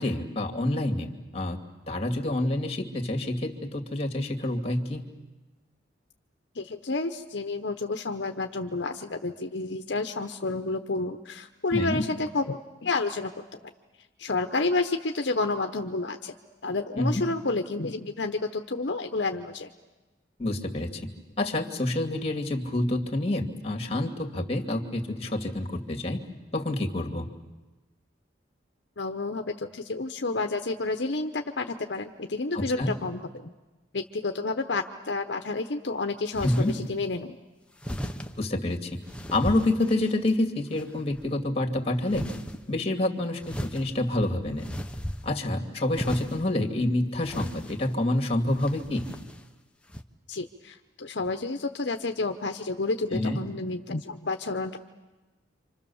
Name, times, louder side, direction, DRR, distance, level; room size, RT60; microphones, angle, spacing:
voice 1, 0.0-1.6 1.9-5.0 11.7-12.0 17.0-17.2 20.4-21.0 21.4-26.2 26.5-27.3 32.5-33.0 36.4-36.7 38.4-39.0 39.3-42.3 42.7-44.7 45.2-49.1 53.1-53.4, left 1 dB, 35° left, 3 dB, 2.5 m, -28 dB
voice 2, 6.5-13.3 14.2-16.3 16.6-19.7 29.0-33.5 33.9-37.4 50.3-54.8, left 3 dB, 70° left, 7 dB, 1.0 m, -30 dB
sound 1, 36.3-36.8 37.8-38.3 39.1-40.3 40.8-41.3 42.1-42.6 43.4-45.5 45.9-46.5 47.2-47.9 48.5-49.4 49.9-50.0, equal, 5° left, 1.1 m, -36 dB
29.0 x 26.0 x 7.2 m, 1.2 s
head